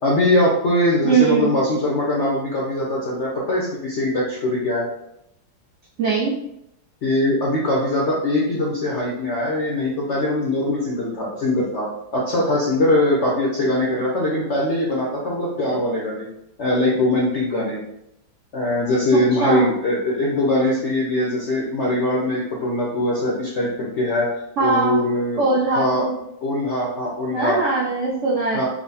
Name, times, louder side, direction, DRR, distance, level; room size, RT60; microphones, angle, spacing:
voice 1, 0.0-4.8 7.0-16.3 16.6-17.8 18.5-24.3 24.6-25.4 25.7-26.1 26.4-27.6 28.5-28.7, left 1 dB, 75° left, -3 dB, 0.6 m, -21 dB
voice 2, 1.0-1.5 6.0-6.3 19.1-19.7 24.6-25.0 25.4-26.1 27.3-28.7, right 4 dB, 85° right, -5 dB, 0.6 m, -20 dB
4.7 x 2.0 x 4.0 m, 0.80 s
omnidirectional pair, 2.1 m